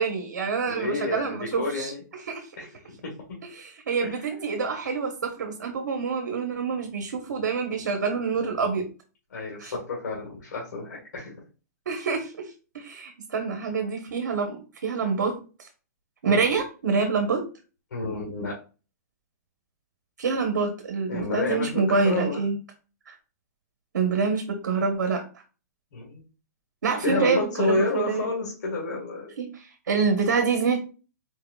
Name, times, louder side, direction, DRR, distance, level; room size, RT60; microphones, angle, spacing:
voice 1, 0.0-1.9 2.3-2.5 3.5-8.9 9.6-9.7 11.9-15.3 16.2-17.4 20.2-22.6 23.1-23.2 23.9-25.2 26.8-28.2 29.4-30.8, right 5 dB, 85° right, 4 dB, 1.0 m, -26 dB
voice 2, 0.7-2.0 2.6-2.7 3.0-3.4 4.0-4.1 9.3-11.4 16.2-16.4 17.9-18.5 21.1-22.4 25.9-26.2 27.0-29.3, left 2 dB, 80° left, -3 dB, 1.7 m, -30 dB
4.6 x 3.7 x 2.3 m, 0.34 s
hypercardioid pair, 155°, 10 cm